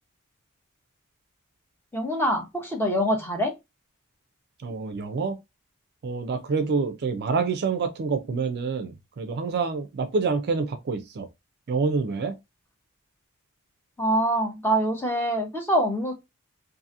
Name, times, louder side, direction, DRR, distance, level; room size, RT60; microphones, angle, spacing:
voice 1, 1.9-3.5 14.0-16.1, right 1 dB, 10° left, 0.8 m, -24 dB
voice 2, 4.6-5.4 6.0-11.3 11.7-12.3, right 4 dB, 50° right, 0.4 m, -27 dB
2.7 x 2.6 x 2.4 m
head